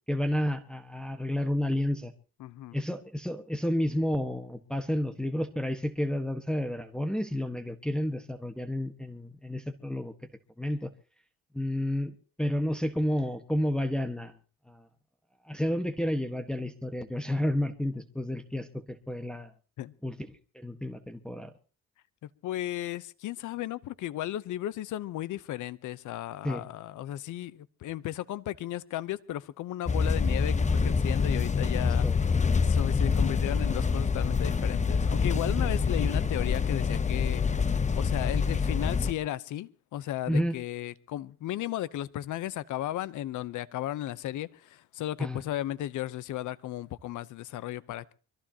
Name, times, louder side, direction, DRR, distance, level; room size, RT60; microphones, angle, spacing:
voice 1, 0.1-2.1 2.7-10.1 10.6-10.9 11.5-14.3 14.7-14.9 15.4-19.5 20.0-20.1 20.5-21.5 26.4-26.6 31.8-32.1 40.3-40.6 45.2-45.4, left 1 dB, 5° left, 1.4 m, -31 dB
voice 2, 2.4-2.8 19.8-19.9 22.2-32.3 32.6-48.1, left 13 dB, 80° left, 0.8 m, -35 dB
sound 1, 29.9-39.1, left 5 dB, 25° left, 0.9 m, -26 dB
24.5 x 15.0 x 2.9 m
cardioid pair, 90°, 30 cm